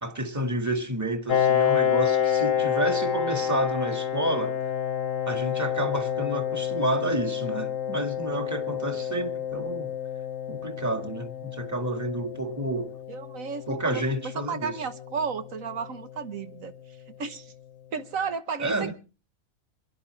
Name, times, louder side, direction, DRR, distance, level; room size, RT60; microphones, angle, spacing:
voice 1, 0.0-4.6 5.3-9.9 10.5-12.9 13.7-14.7 18.6-18.9, right 1 dB, 10° right, 1.8 m, -30 dB
Piano, 1.3-16.6, left 9 dB, 70° left, 1.2 m, -29 dB
voice 2, 13.1-14.0 14.3-16.7 17.2-17.5 17.9-18.9, right 5 dB, 70° right, 1.5 m, -33 dB
27.5 x 11.5 x 3.2 m
omnidirectional pair, 1.5 m